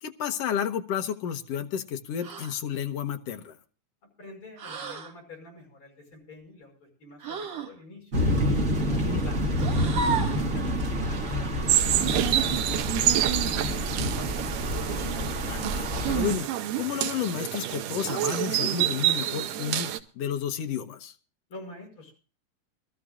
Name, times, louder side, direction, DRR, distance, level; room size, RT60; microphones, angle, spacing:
voice 1, 0.0-3.6 8.9-9.2 15.2-16.5 16.8-21.1, left 8 dB, 65° left, 6 dB, 1.7 m, -32 dB
sound 1, 2.2-2.6 4.6-5.1 7.2-7.7 9.5-10.5 12.1-12.3 14.4-14.9 16.3-16.8, right 5 dB, 50° right, 2.7 m, -34 dB
voice 2, 4.2-8.1 8.8-9.5 10.0-14.3 21.5-22.1, left 1 dB, 40° left, 1 dB, 6.2 m, -47 dB
sound 2, 8.1-16.4, equal, 35° right, 1.3 m, -28 dB
sound 3, 11.7-20.0, right 12 dB, 80° right, 2.5 m, -27 dB
24.5 x 13.5 x 2.4 m, 0.35 s
omnidirectional pair, 3.9 m